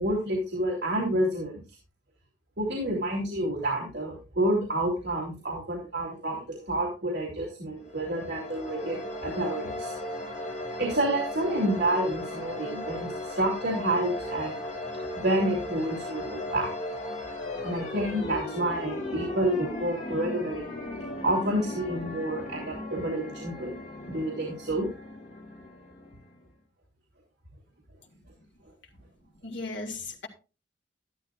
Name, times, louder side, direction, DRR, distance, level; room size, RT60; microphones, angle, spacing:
voice 1, 0.0-1.6 2.6-6.4 6.7-9.9 10.8-14.6 15.1-16.7 17.6-20.6 21.2-23.7 24.1-24.9, right 1 dB, 55° right, -3 dB, 2.9 m, -29 dB
sound 1, 7.8-26.5, left 1 dB, 40° left, 2.5 m, -37 dB
voice 2, 29.0-30.3, left 3 dB, 60° left, 2 dB, 2.2 m, -38 dB
12.5 x 11.5 x 2.5 m, 0.33 s
head